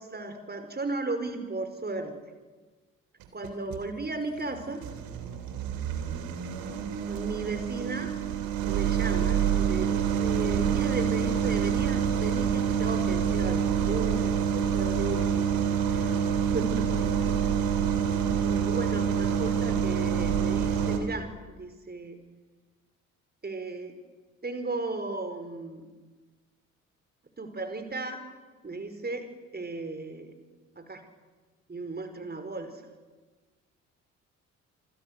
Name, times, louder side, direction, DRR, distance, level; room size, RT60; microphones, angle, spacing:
voice 1, 0.1-2.2 3.3-4.8 7.1-8.1 8.6-15.5 15.9-16.1 16.5-17.4 18.2-22.2 23.4-23.9 24.4-25.8 27.4-28.2 28.6-29.3 29.5-30.3 30.8-31.0 31.7-32.8, right 3 dB, 25° right, 8 dB, 4.7 m, -35 dB
sound 1, 3.2-3.8 4.4-21.0, right 7 dB, 65° right, 3.3 m, -27 dB
27.0 x 26.5 x 6.7 m, 1.3 s
figure-of-eight pair, 45°, 39 cm